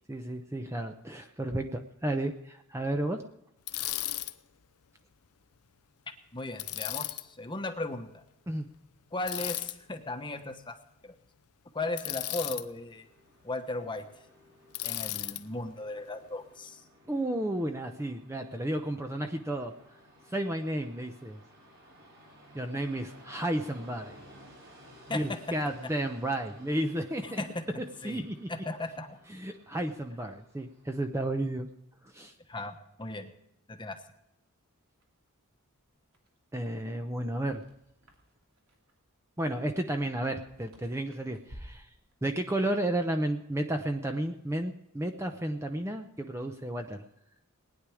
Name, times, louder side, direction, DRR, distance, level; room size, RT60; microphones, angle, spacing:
voice 1, 0.1-3.2 8.5-8.7 17.1-19.7 20.3-21.4 22.5-24.2 25.1-27.4 28.0-28.5 29.3-31.7 32.1-32.3 36.5-37.6 39.4-41.9 42.2-47.0, right 1 dB, 10° right, 5 dB, 0.7 m, -32 dB
Bicycle, 3.7-4.3 6.6-7.2 9.3-9.7 12.0-12.6 14.7-15.4, left 15 dB, 85° left, 0.7 m, -34 dB
voice 2, 6.3-8.2 9.1-10.8 11.0-11.1 11.7-13.0 13.4-14.0 14.8-16.8 25.1-25.6 27.2-27.6 28.0-28.2 28.5-29.2 32.5-33.3 33.7-34.0, left 2 dB, 20° left, 6 dB, 1.1 m, -36 dB
Train, 12.5-31.0, equal, 60° right, 5.2 m, -56 dB
sound 1, 34.8-44.7, equal, 75° right, 3.0 m, -57 dB
19.0 x 10.0 x 4.9 m, 0.85 s
head